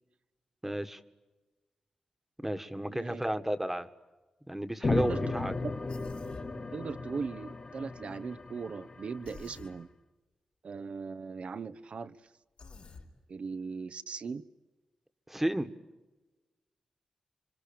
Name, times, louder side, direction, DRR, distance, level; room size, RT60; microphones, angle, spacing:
voice 1, 0.6-1.0 2.4-3.9 4.5-5.5 15.3-15.7, right 1 dB, 10° right, 10 dB, 1.7 m, -32 dB
voice 2, 2.9-3.2 4.9-5.2 6.7-9.9 10.6-12.1 13.3-14.4, right 5 dB, 65° right, 12 dB, 1.1 m, -39 dB
sound 1, 4.8-9.5, left 3 dB, 45° left, 2.3 m, -35 dB
Human voice, 5.9-6.5 9.2-9.7 12.6-13.1, left 4 dB, 75° left, 5.2 m, -49 dB
26.0 x 25.5 x 8.8 m, 1.2 s
cardioid pair, 65°, 2 cm